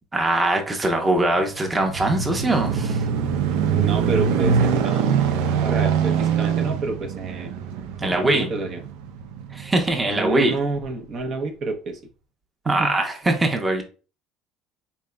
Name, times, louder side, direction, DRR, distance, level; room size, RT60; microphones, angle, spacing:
voice 1, 0.1-3.0 8.0-8.5 9.5-10.6 12.7-13.8, right 2 dB, 15° right, 3 dB, 0.8 m, -22 dB
sound 1, 1.4-10.2 10.8-10.9, right 7 dB, 85° right, 0.6 m, -23 dB
voice 2, 3.7-5.2 5.6-7.5 8.0-8.8 10.0-12.0 12.7-13.0 13.3-13.4, right 3 dB, 50° right, 4 dB, 0.8 m, -29 dB
4.1 x 3.5 x 2.2 m, 0.36 s
supercardioid pair, 110°, 0 cm